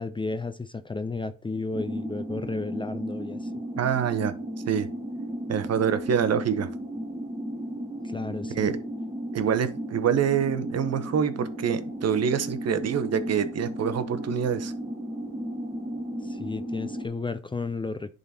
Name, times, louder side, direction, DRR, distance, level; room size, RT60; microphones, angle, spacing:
voice 1, 0.0-3.5 8.0-8.8 16.2-18.1, left 3 dB, 15° left, 0.5 m, -33 dB
sound 1, 1.7-17.1, right 1 dB, 10° right, 1.1 m, -34 dB
voice 2, 3.8-4.3 4.7-4.9 5.5-6.7 8.5-8.7 9.3-14.7, right 8 dB, 55° right, 1.0 m, -26 dB
11.0 x 3.9 x 2.9 m
cardioid pair, 90°, 30 cm